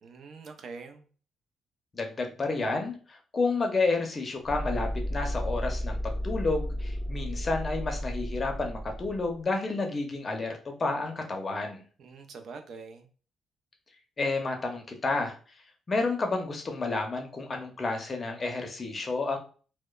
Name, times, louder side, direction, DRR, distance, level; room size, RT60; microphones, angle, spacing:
voice 1, 0.0-1.1 12.0-13.1, right 4 dB, 65° right, 6 dB, 0.4 m, -44 dB
voice 2, 1.9-11.8 14.2-15.4 15.9-19.4, left 3 dB, 35° left, 3 dB, 0.6 m, -30 dB
sound 1, 4.4-9.3, equal, 10° right, 0.9 m, -33 dB
2.8 x 2.0 x 2.2 m, 0.40 s
cardioid pair, 90°, 0 cm